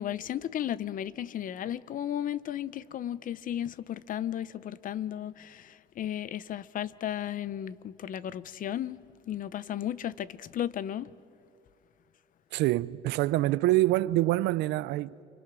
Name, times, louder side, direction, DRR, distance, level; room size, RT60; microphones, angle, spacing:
voice 1, 0.0-9.0 9.3-11.1, left 10 dB, 55° left, 0.8 m, -34 dB
voice 2, 12.5-15.2, right 16 dB, 85° right, 0.6 m, -26 dB
29.5 x 25.0 x 6.2 m
cardioid pair, 110°, 17 cm